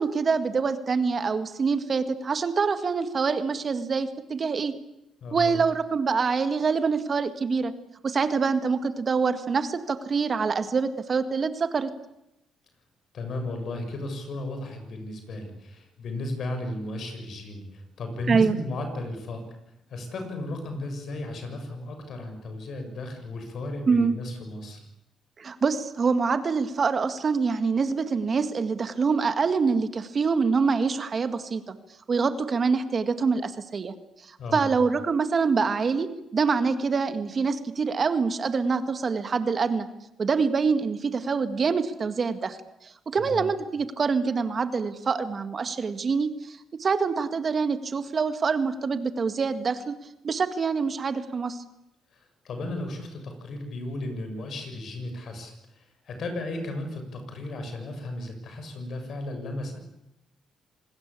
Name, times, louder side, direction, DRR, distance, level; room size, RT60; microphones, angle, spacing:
voice 1, 0.0-4.7 5.3-7.7 8.0-11.9 18.3-18.6 23.9-24.2 25.4-31.7 32.1-33.9 34.3-39.9 40.2-42.6 43.1-49.9 50.2-51.6, right 5 dB, 40° right, 10 dB, 2.0 m, -25 dB
voice 2, 5.2-5.6 13.1-19.5 19.9-24.9 34.4-34.7 43.2-43.5 52.1-52.2 52.4-59.8, left 2 dB, 60° left, 6 dB, 7.2 m, -35 dB
26.5 x 20.0 x 8.6 m, 0.85 s
cardioid pair, 90°, 0 cm